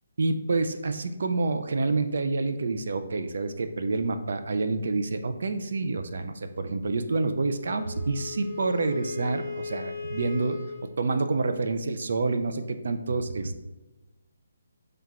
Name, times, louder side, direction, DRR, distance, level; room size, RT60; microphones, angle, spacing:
voice 1, 0.2-10.6 11.0-13.6, right 3 dB, 55° right, 8 dB, 0.4 m, -28 dB
Wind instrument woodwind instrument, 7.7-11.0, left 5 dB, 25° right, 1.1 m, -37 dB
5.6 x 3.3 x 2.4 m, 1.1 s
hypercardioid pair, 175°, 0 cm